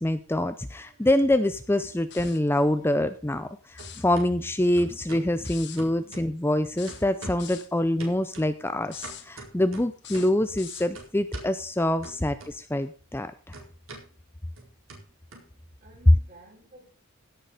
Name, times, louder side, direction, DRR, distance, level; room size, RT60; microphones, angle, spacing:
voice 1, 0.0-13.6, left 1 dB, 10° left, 0.5 m, -26 dB
sound 1, 0.8-1.6 1.9-3.5 3.8-4.3 4.8-5.3 5.8-6.6 6.9-7.5 8.0-10.4 10.9-11.5 12.0-12.9 13.1-16.0, right 2 dB, 65° right, 4.4 m, -46 dB
sound 2, 2.1-2.5 3.7-4.1 5.4-5.8 6.8-7.7 8.8-9.3 10.0-10.9, left 10 dB, 50° left, 1.7 m, -43 dB
voice 2, 15.6-16.9, right 1 dB, 40° right, 5.9 m, -52 dB
16.5 x 6.9 x 5.1 m
head